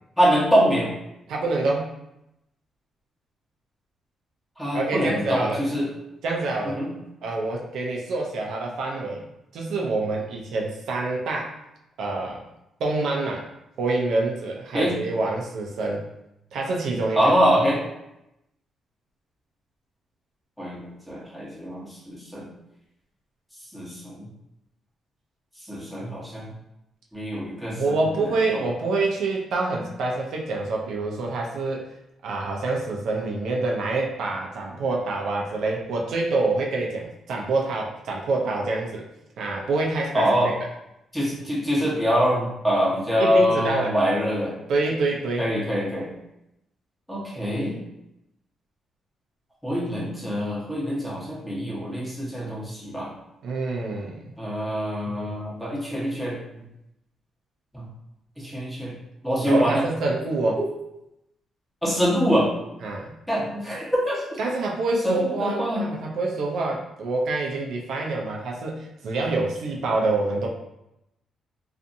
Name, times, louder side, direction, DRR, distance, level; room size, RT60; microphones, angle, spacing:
voice 1, 0.2-0.9 4.6-5.9 6.8-6.9 14.7-14.9 17.1-17.8 20.6-22.4 23.7-24.2 25.7-26.5 27.1-27.8 40.1-40.5 41.1-44.5 45.4-46.1 47.1-47.7 49.6-53.1 54.4-56.4 57.7-57.8 58.4-58.9 59.2-59.8 61.8-62.5 63.3-64.2 65.0-65.8, equal, ahead, -6 dB, 1.0 m, -24 dB
voice 2, 1.3-1.9 4.7-5.6 6.2-6.8 7.2-9.3 9.5-11.6 12.0-12.4 12.8-13.5 13.8-16.0 16.5-17.3 27.8-31.9 32.2-39.1 39.4-40.6 43.2-43.9 44.7-45.5 53.4-54.3 55.1-55.3 59.4-60.6 62.8-63.1 64.4-70.5, right 3 dB, 75° right, -1 dB, 0.4 m, -26 dB
2.6 x 2.4 x 2.6 m, 0.86 s
cardioid pair, 100°, 0 cm